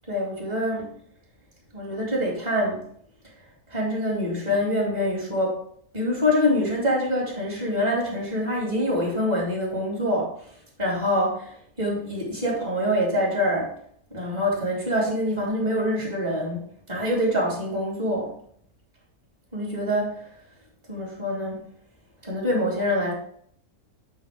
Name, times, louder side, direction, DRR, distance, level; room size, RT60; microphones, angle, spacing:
voice 1, 0.1-0.9 1.7-2.8 3.7-5.6 5.9-10.3 10.8-13.7 14.1-16.6 16.9-18.3 19.5-20.2 20.9-21.7 22.2-23.1, equal, 30° right, -4 dB, 3.0 m, -25 dB
8.6 x 4.0 x 5.1 m, 0.63 s
omnidirectional pair, 1.4 m